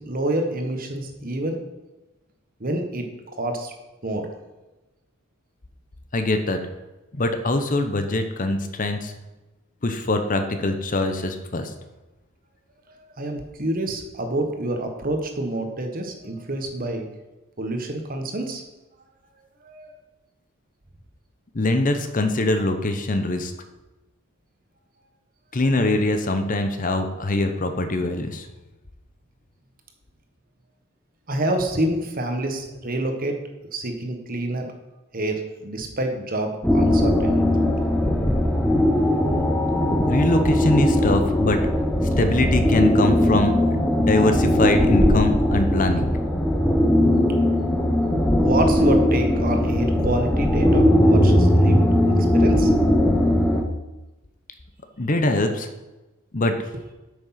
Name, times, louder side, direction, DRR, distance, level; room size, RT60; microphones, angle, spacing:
voice 1, 0.0-1.6 2.6-3.1 3.4-3.7 4.0-4.3 13.0-17.1 17.6-18.6 19.6-19.9 31.3-33.4 33.7-34.7 35.1-37.4 48.4-51.9 52.3-52.7, right 1 dB, 40° right, 4 dB, 1.4 m, -27 dB
voice 2, 6.1-6.6 7.1-9.1 9.8-11.7 21.5-23.5 25.5-28.5 40.1-41.6 42.2-43.6 44.0-46.1 55.0-55.7 56.3-56.5, left 2 dB, 35° left, 7 dB, 0.8 m, -23 dB
sound 1, 36.6-53.6, left 1 dB, 5° left, 0.8 m, -19 dB
8.7 x 6.4 x 5.8 m, 1.1 s
head